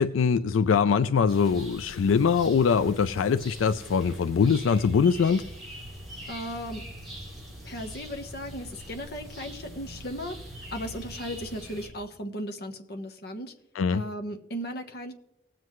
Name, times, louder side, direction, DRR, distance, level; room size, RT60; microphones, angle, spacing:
voice 1, 0.0-5.4 13.8-14.0, left 6 dB, 85° left, 12 dB, 0.4 m, -23 dB
sound 1, 1.3-11.9, equal, ahead, 3.1 m, -43 dB
voice 2, 6.3-6.9 7.6-10.3 10.7-13.5 13.9-15.1, equal, 55° left, 5 dB, 1.1 m, -36 dB
19.0 x 7.6 x 3.1 m, 0.84 s
head